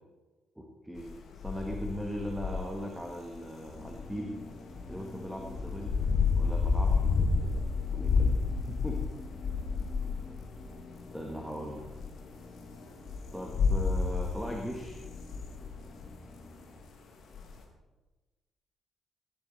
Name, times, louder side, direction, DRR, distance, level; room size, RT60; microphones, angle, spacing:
voice 1, 0.6-4.3 4.9-5.9 6.4-8.3 8.7-8.9 11.1-11.8 13.3-15.0, equal, 5° right, 1 dB, 1.8 m, -39 dB
sound 1, 1.0-11.2 11.8-12.3 12.6-16.1 16.8-16.9 17.3-17.6, left 5 dB, 55° left, 1.9 m, -30 dB
sound 2, 3.7-16.8, left 2 dB, 20° left, 2.0 m, -49 dB
18.0 x 8.8 x 4.0 m, 1.2 s
figure-of-eight pair, 40°, 0 cm